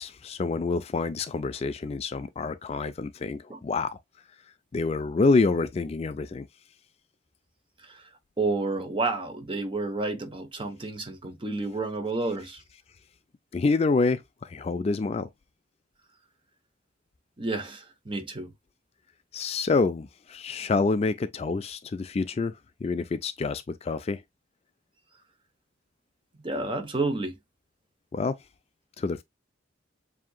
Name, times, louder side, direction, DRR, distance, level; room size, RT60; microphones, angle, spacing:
voice 1, 0.0-4.0 4.7-6.5 13.5-15.3 19.3-22.5 22.8-24.2 28.1-28.4 29.0-29.2, left 3 dB, 30° left, 0.3 m, -27 dB
voice 2, 8.4-12.6 17.4-18.5 26.4-27.4, right 3 dB, 25° right, 0.9 m, -30 dB
7.4 x 2.8 x 2.2 m
head